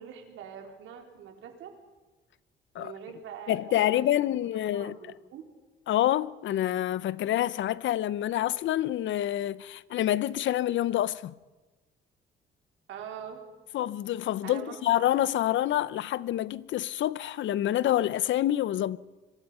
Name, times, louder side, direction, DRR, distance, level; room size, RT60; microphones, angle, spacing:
voice 1, 0.0-1.7 2.8-5.4 12.9-13.4 14.4-14.8, right 8 dB, 85° right, 4.0 m, -44 dB
voice 2, 3.5-5.0 5.9-11.3 13.7-19.0, left 13 dB, 75° left, 0.8 m, -27 dB
26.0 x 24.0 x 5.6 m
cardioid pair, 90°, 20 cm